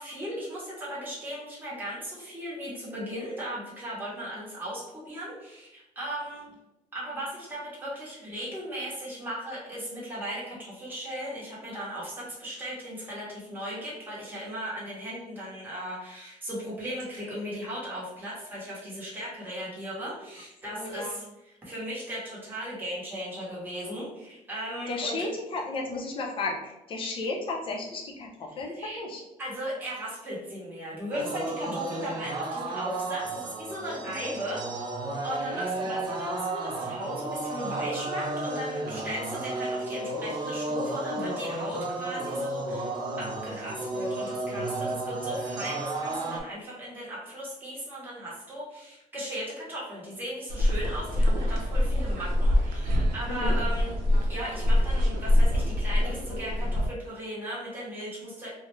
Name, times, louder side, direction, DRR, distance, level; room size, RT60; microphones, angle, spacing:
voice 1, 0.0-6.5 6.9-25.2 28.8-29.0 29.4-34.8 35.2-54.0 54.3-58.5, equal, 15° right, -7 dB, 0.9 m, -37 dB
voice 2, 20.7-21.2 24.9-29.2 34.2-34.3 35.5-35.6 53.3-53.6, left 3 dB, 35° left, 0 dB, 0.5 m, -34 dB
sound 1, 31.1-46.4, right 2 dB, 30° right, 0.4 m, -33 dB
sound 2, 50.5-56.9, left 1 dB, 90° right, 0.5 m, -25 dB
2.4 x 2.0 x 3.0 m, 0.92 s
cardioid pair, 165°, 15 cm